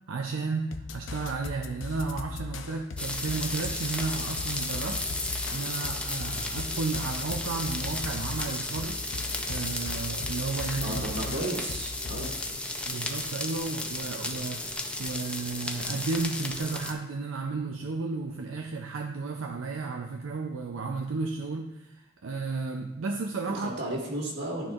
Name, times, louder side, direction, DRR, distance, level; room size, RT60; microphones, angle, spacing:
voice 1, 0.1-5.0 5.5-9.0 9.5-11.4 12.2-12.3 12.7-23.7, right 4 dB, 80° right, 3 dB, 0.5 m, -33 dB
sound 1, 0.7-12.4, left 4 dB, 80° left, 0.6 m, -39 dB
sound 2, 3.0-16.9, left 2 dB, 5° left, 0.5 m, -34 dB
voice 2, 10.8-12.3 23.5-24.7, right 1 dB, 60° right, -2 dB, 1.9 m, -34 dB
12.5 x 4.4 x 2.4 m, 0.93 s
head